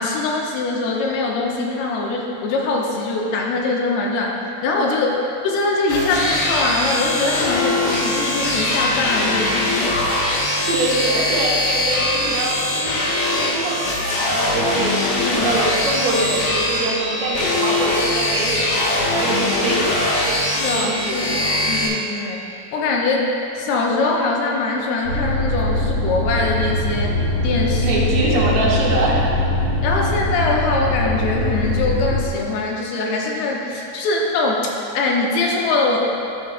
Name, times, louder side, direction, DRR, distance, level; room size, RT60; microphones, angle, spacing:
voice 1, 0.0-5.2 5.4-9.8 15.2-15.5 20.6-22.5 22.7-23.3 23.6-28.0 29.8-36.0, left 3 dB, 80° left, -1 dB, 2.9 m, -22 dB
sound 1, 5.9-21.9, left 1 dB, 65° left, 2.6 m, -21 dB
voice 2, 10.7-15.0 15.3-21.6 27.8-29.3, right 2 dB, 80° right, -5 dB, 3.4 m, -24 dB
sound 2, 25.0-32.2, left 1 dB, 60° right, 3.7 m, -22 dB
12.0 x 10.5 x 2.2 m, 2.6 s
omnidirectional pair, 4.6 m